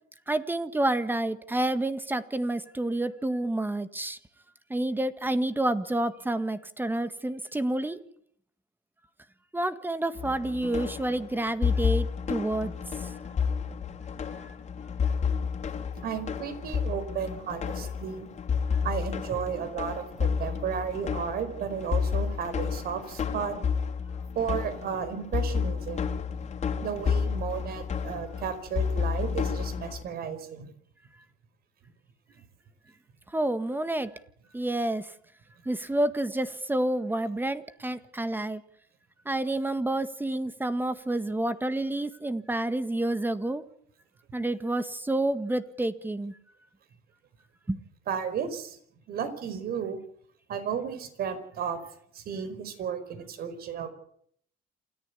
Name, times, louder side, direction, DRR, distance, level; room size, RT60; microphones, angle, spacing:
voice 1, 0.3-4.2 4.7-8.0 9.5-12.7 33.3-34.1 34.5-35.1 35.6-38.6 39.2-43.6 44.3-46.3 47.7-47.8, right 1 dB, 10° right, 11 dB, 1.7 m, -29 dB
sound 1, 10.2-30.0, left 6 dB, 40° left, 3.3 m, -31 dB
voice 2, 16.0-18.3 18.8-23.6 24.3-26.1 26.8-30.7 48.1-48.8 49.1-50.0 50.5-51.8 52.1-53.9, right 7 dB, 60° right, 11 dB, 5.1 m, -33 dB
28.0 x 14.5 x 8.4 m, 0.66 s
cardioid pair, 95°, 18 cm